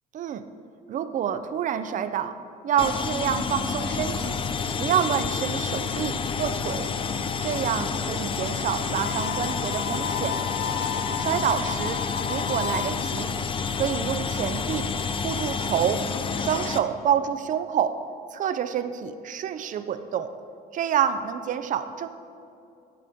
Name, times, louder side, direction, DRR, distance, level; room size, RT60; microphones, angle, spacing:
voice 1, 0.1-0.4 0.9-2.4 2.6-4.4 4.8-6.9 7.4-10.4 11.2-12.0 12.3-13.3 13.7-14.9 15.2-16.1 16.4-18.0 18.3-20.3 20.7-22.1, right 9 dB, 50° right, 10 dB, 0.6 m, -27 dB
sound 1, 2.8-16.8, left 5 dB, 30° left, 0.6 m, -29 dB
Harmonica, 8.9-13.0, left 7 dB, 75° left, 0.5 m, -33 dB
13.5 x 9.5 x 3.6 m, 2.6 s
cardioid pair, 110°, 17 cm